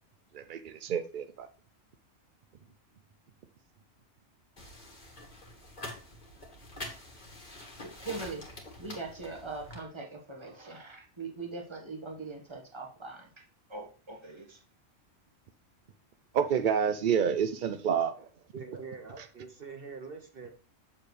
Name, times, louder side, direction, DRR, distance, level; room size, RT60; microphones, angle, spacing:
voice 1, 0.3-1.5 16.3-18.3, right 7 dB, 65° right, 10 dB, 0.5 m, -28 dB
sound 1, 4.6-9.8, left 1 dB, 35° left, 1.7 m, -46 dB
voice 2, 7.8-8.4 8.8-13.3 13.7-14.6, right 3 dB, 20° right, 2 dB, 1.3 m, -41 dB
voice 3, 18.5-20.5, right 5 dB, 50° right, 5 dB, 1.0 m, -44 dB
7.3 x 6.8 x 3.2 m, 0.35 s
omnidirectional pair, 1.4 m